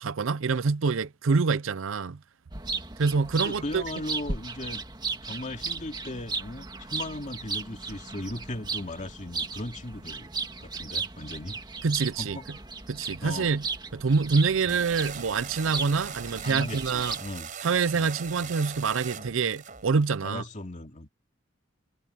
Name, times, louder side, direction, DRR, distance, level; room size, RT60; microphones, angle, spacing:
voice 1, 0.0-2.2 3.0-3.8 11.8-12.4 12.9-13.6 13.9-17.2 17.6-20.4, right 4 dB, 80° right, 0.6 m, -26 dB
sound 1, 2.5-17.2, right 4 dB, 20° right, 2.0 m, -36 dB
voice 2, 3.4-4.8 5.2-10.3 10.6-11.6 12.2-12.4 13.2-13.6 14.6-14.8 16.4-17.5 17.9-18.1 18.4-18.5 19.1-19.3 20.2-21.1, left 1 dB, 40° left, 2.4 m, -37 dB
sound 2, 14.7-20.1, right 7 dB, 40° right, 4.3 m, -41 dB
head